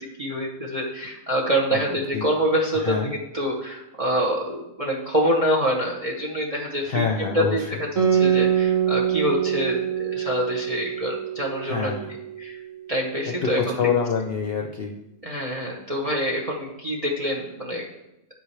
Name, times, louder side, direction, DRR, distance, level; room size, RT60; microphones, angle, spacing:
voice 1, 0.2-11.9 12.4-12.6 12.9-13.9 15.2-17.9, equal, 30° right, 0 dB, 0.9 m, -26 dB
voice 2, 2.7-3.1 6.8-7.8 11.6-12.1 13.4-14.9, left 6 dB, 55° left, 3 dB, 0.7 m, -26 dB
Guitar, 8.0-12.9, right 9 dB, 70° right, 2.3 m, -24 dB
8.8 x 8.2 x 3.3 m, 0.90 s
omnidirectional pair, 1.5 m